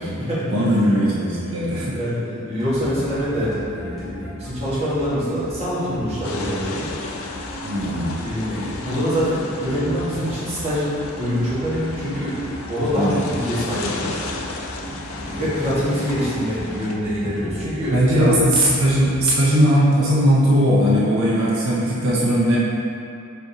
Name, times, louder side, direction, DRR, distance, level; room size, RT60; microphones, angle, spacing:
voice 1, 0.0-0.5 1.8-6.9 8.2-10.9 11.2-12.4 12.7-14.2 15.1-18.5, equal, 30° right, -10 dB, 1.3 m, -25 dB
voice 2, 0.5-1.9 7.6-8.1 12.9-13.2 14.9-15.0 17.2-17.4 17.9-22.6, equal, 70° right, -7 dB, 0.7 m, -18 dB
sound 1, 2.6-19.2, equal, ahead, 0.9 m, -37 dB
sound 2, 6.2-16.9, left 3 dB, 70° left, 0.4 m, -34 dB
4.8 x 4.2 x 2.7 m, 2.6 s
head